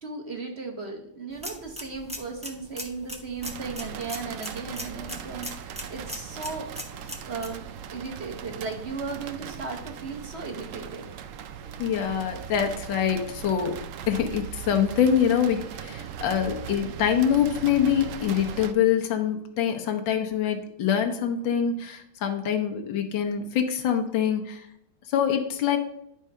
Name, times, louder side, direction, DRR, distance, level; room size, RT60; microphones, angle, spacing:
voice 1, 0.0-6.7 7.2-7.6 7.9-11.1, right 4 dB, 40° right, 2 dB, 1.3 m, -36 dB
sound 1, 1.3-7.5, equal, 10° right, 0.4 m, -40 dB
sound 2, 3.4-18.7, right 8 dB, 80° right, 0.7 m, -39 dB
voice 2, 11.8-24.7 25.1-25.8, left 8 dB, 90° left, 4 dB, 1.6 m, -25 dB
11.0 x 3.7 x 5.5 m, 0.75 s
omnidirectional pair, 2.0 m